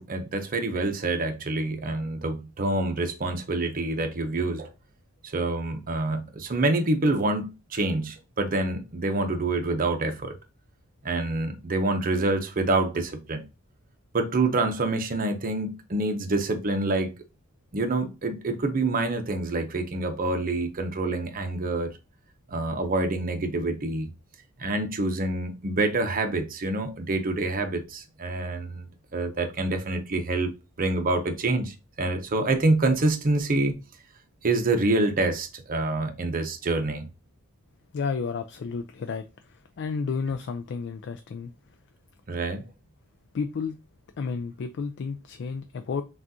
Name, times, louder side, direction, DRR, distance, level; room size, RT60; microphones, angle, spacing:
voice 1, 0.0-4.7 5.2-10.4 11.0-13.4 14.1-17.1 17.7-21.9 22.5-24.1 24.6-30.5 30.8-33.8 34.4-37.1 42.3-42.6, right 2 dB, 40° right, 0.7 m, -26 dB
voice 2, 37.9-41.5 43.3-43.8 44.2-46.0, left 5 dB, 55° left, 0.4 m, -32 dB
6.0 x 2.4 x 2.7 m
head